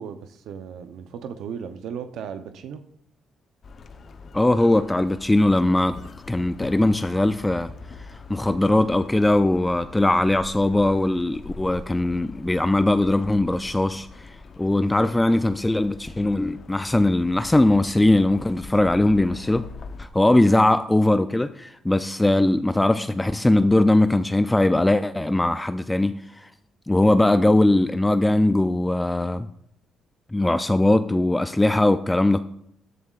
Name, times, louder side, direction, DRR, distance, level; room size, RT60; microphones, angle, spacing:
voice 1, 0.0-2.8, right 7 dB, 80° right, 0.7 m, -36 dB
sound 1, 3.6-20.1, left 4 dB, 50° left, 0.8 m, -42 dB
voice 2, 4.3-6.0 6.3-7.7 8.0-19.7 20.0-26.5 26.9-29.5 30.3-32.4, left 1 dB, 10° left, 0.4 m, -20 dB
13.5 x 11.0 x 2.4 m
cardioid pair, 90°, 0 cm